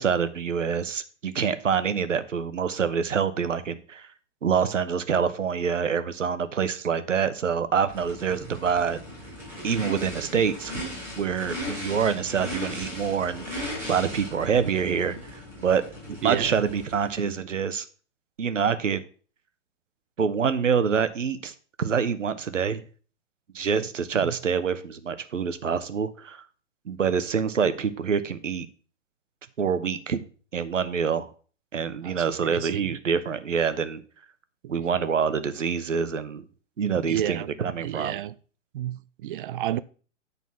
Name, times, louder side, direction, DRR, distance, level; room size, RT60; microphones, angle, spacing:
voice 1, 0.0-4.1 4.4-9.0 9.6-10.8 11.2-15.8 16.2-17.8 18.4-19.0 20.2-22.8 23.5-26.4 26.9-28.7 29.6-30.2 30.5-31.3 31.7-34.0 34.7-36.5 36.8-38.2, right 6 dB, 90° right, 0.9 m, -26 dB
Race car auto racing / Idling / Accelerating revving vroom, 7.9-17.3, left 1 dB, 5° right, 4.1 m, -37 dB
voice 2, 16.2-16.6 24.1-24.3 32.0-32.9 37.1-37.5 37.8-38.3 38.7-39.8, right 12 dB, 45° right, 0.5 m, -31 dB
9.5 x 4.1 x 5.6 m
hypercardioid pair, 125°, 36 cm